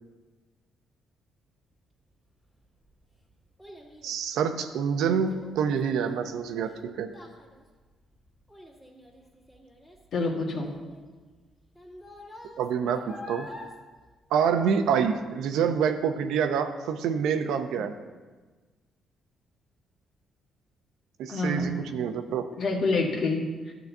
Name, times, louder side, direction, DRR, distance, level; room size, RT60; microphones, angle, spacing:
Child speech kid speaking, 2.4-15.1 15.4-15.9 16.4-16.5, left 1 dB, 5° left, 2.0 m, -48 dB
voice 1, 4.0-7.1 12.6-13.5 14.3-17.9 21.2-22.5, right 7 dB, 85° right, 7 dB, 0.7 m, -27 dB
voice 2, 10.1-10.7 21.3-21.8 22.6-23.7, left 2 dB, 65° left, 0 dB, 1.8 m, -27 dB
12.0 x 4.0 x 7.1 m, 1.3 s
cardioid pair, 90°, 0 cm